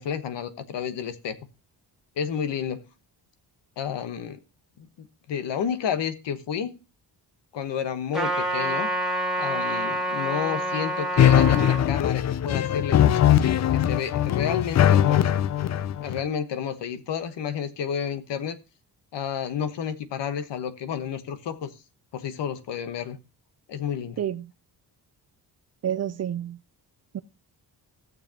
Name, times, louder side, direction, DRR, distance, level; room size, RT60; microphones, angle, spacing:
voice 1, 0.0-1.4 2.2-2.8 3.8-4.4 4.8-6.8 7.5-8.9 9.4-13.0 13.3-15.4 16.0-18.6 19.1-21.7 22.1-23.2 23.7-24.2, left 8 dB, 85° left, 1.2 m, -31 dB
Trumpet, 8.1-11.8, right 1 dB, ahead, 1.7 m, -27 dB
sound 1, 11.2-16.2, left 10 dB, 40° left, 0.4 m, -20 dB
voice 2, 24.2-24.5 25.8-26.6 27.1-27.2, right 10 dB, 40° right, 0.4 m, -29 dB
16.0 x 6.9 x 2.8 m
wide cardioid pair, 150°, 41 cm